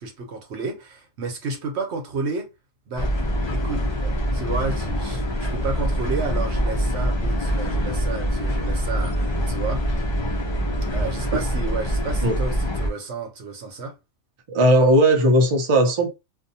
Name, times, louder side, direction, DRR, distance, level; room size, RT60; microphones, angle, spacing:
voice 1, 0.0-2.5 2.9-3.1 3.5-9.9 10.9-14.0, right 4 dB, 65° right, 1.1 m, -31 dB
sound 1, 3.0-12.9, equal, 50° left, 0.3 m, -24 dB
voice 2, 14.5-16.1, right 1 dB, 40° right, 0.5 m, -17 dB
2.6 x 2.2 x 2.7 m
omnidirectional pair, 1.2 m